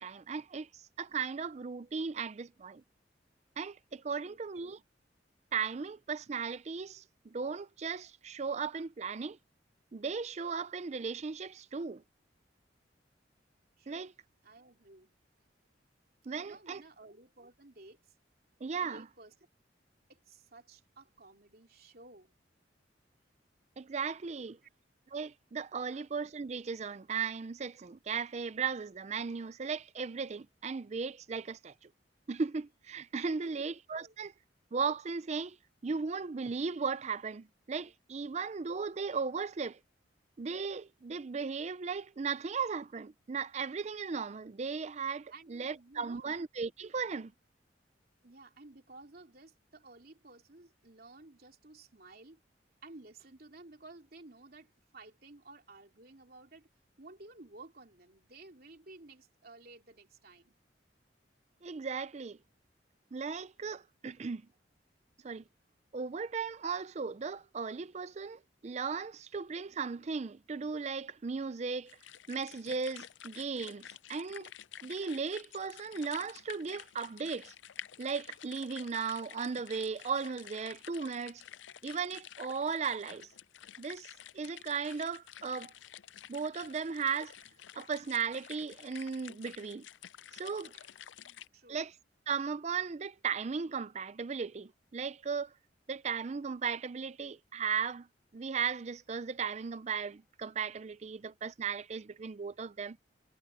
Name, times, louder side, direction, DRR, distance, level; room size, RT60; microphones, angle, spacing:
voice 1, 0.0-2.8 3.6-4.8 5.5-9.4 9.9-12.0 13.9-14.1 16.3-16.8 18.6-19.1 23.8-24.6 25.1-31.9 32.3-34.3 34.7-35.6 35.8-39.8 40.4-47.3 61.6-62.4 63.1-64.4 65.2-65.4 65.9-72.0 72.3-74.5 74.8-77.5 78.0-81.4 81.8-83.3 83.8-85.7 86.3-87.4 87.7-89.9 90.3-90.7 91.7-91.9 92.3-95.5 95.9-98.1 98.3-103.0, right 5 dB, 35° right, 0.4 m, -36 dB
voice 2, 4.1-4.8 13.8-14.1 14.4-15.1 16.3-18.1 18.8-19.3 20.1-22.3 24.4-24.7 25.8-26.1 33.4-34.2 45.3-46.4 48.2-52.4 52.8-56.7 57.0-60.6 90.7-90.9 91.2-91.9, right 2 dB, 55° right, 3.4 m, -54 dB
sound 1, 71.9-91.5, left 10 dB, 85° left, 0.5 m, -51 dB
head